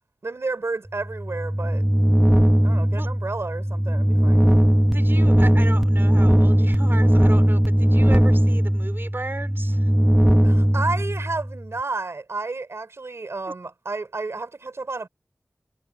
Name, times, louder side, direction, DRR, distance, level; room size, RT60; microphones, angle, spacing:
voice 1, 0.2-1.8 2.6-4.5 10.4-15.1, right 3 dB, 80° right, 5.0 m, -31 dB
sound 1, 1.0-11.6, equal, 5° right, 1.1 m, -18 dB
voice 2, 4.9-9.9, right 2 dB, 55° right, 4.2 m, -35 dB
wide cardioid pair, 45°, 5 cm